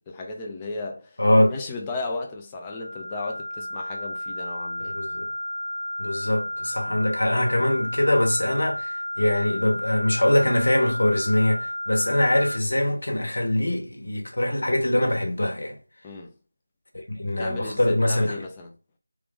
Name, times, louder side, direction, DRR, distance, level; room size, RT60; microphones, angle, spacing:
voice 1, 0.1-1.2 1.5-4.9 6.8-7.0 16.0-16.3 17.3-18.7, left 3 dB, 15° left, 0.5 m, -35 dB
voice 2, 1.2-1.5 4.8-5.3 6.0-15.8 16.9-18.4, left 1 dB, 65° left, 1.2 m, -23 dB
sound 1, 2.6-12.6, left 1 dB, 45° left, 0.8 m, -32 dB
3.5 x 2.5 x 3.5 m
figure-of-eight pair, 170°, 0 cm